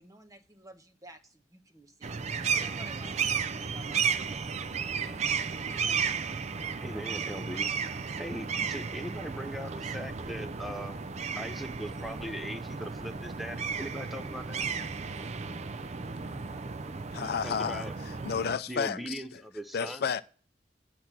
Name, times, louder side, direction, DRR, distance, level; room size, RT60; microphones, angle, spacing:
voice 1, 0.0-6.1, right 1 dB, 20° right, 1.0 m, -53 dB
sound 1, 2.0-18.6, right 6 dB, 40° right, 0.5 m, -34 dB
voice 2, 6.8-7.7 8.2-11.0 11.3-14.6 17.4-17.9 18.7-20.2, equal, ahead, 0.6 m, -40 dB
voice 3, 17.1-17.9 18.2-19.2 19.7-20.2, left 6 dB, 60° left, 0.4 m, -31 dB
8.6 x 6.0 x 5.9 m
head